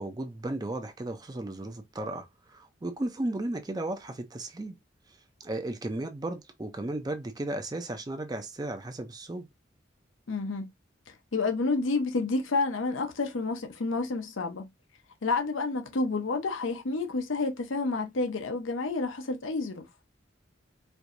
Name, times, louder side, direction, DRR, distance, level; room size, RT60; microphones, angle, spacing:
voice 1, 0.0-4.8 5.1-9.5, right 2 dB, 20° right, 0.4 m, -35 dB
voice 2, 10.3-10.7 11.1-14.7 15.2-19.9, left 3 dB, 90° left, 0.7 m, -29 dB
4.5 x 2.6 x 2.5 m
head